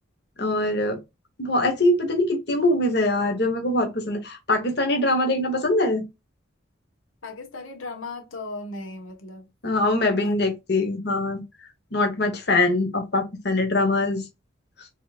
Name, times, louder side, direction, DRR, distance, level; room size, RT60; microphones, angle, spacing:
voice 1, 0.4-1.0 1.4-6.0 9.6-11.4 11.9-14.2, left 2 dB, 55° left, 1.1 m, -23 dB
voice 2, 7.2-9.4 10.2-10.3, left 2 dB, 85° left, 1.1 m, -36 dB
5.3 x 3.5 x 2.4 m
head